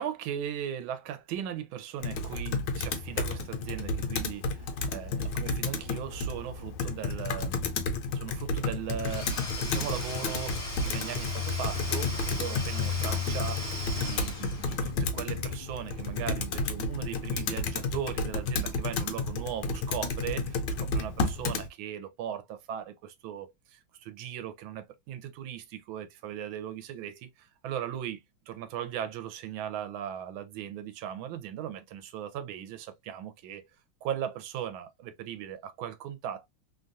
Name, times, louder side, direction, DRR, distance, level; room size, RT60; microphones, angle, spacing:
voice 1, 0.0-7.9 8.1-13.7 13.9-33.7 34.0-36.5, right 10 dB, 80° right, 1.4 m, -38 dB
Computer keyboard, 2.0-21.7, left 3 dB, 70° left, 1.1 m, -31 dB
Domestic sounds home sounds / Tools, 9.0-15.1, left 1 dB, 30° left, 0.7 m, -39 dB
3.4 x 2.3 x 2.6 m
omnidirectional pair, 2.3 m